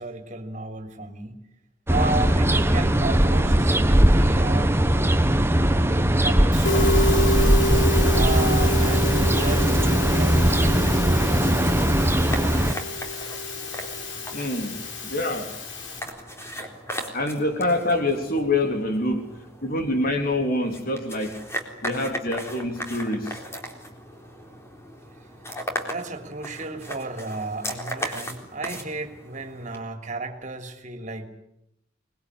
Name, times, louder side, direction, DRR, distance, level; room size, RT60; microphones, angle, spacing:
voice 1, 0.0-1.4 1.9-4.8 6.2-7.3 8.1-10.7 16.2-16.3 25.9-31.3, right 3 dB, 40° right, 6 dB, 3.2 m, -33 dB
sound 1, 1.9-12.7, right 1 dB, 15° right, 1.2 m, -20 dB
Musical instrument, 6.5-16.0, left 1 dB, 75° left, 5.0 m, -28 dB
sound 2, 9.9-29.8, equal, 15° left, 3.8 m, -38 dB
voice 2, 14.3-15.5 17.1-19.3 19.6-21.4 21.8-23.4, left 1 dB, 50° left, 5 dB, 3.4 m, -26 dB
25.0 x 21.0 x 9.9 m, 0.80 s
head